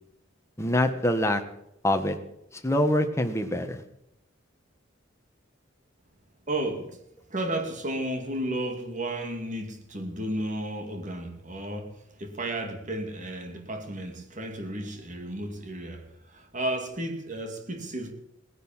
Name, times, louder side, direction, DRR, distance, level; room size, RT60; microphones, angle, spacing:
voice 1, 0.6-1.4 1.8-2.2 2.6-3.8, left 1 dB, 15° left, 1.6 m, -24 dB
voice 2, 6.5-7.0 7.3-18.1, right 1 dB, 40° right, 2.4 m, -33 dB
18.0 x 10.5 x 7.4 m
head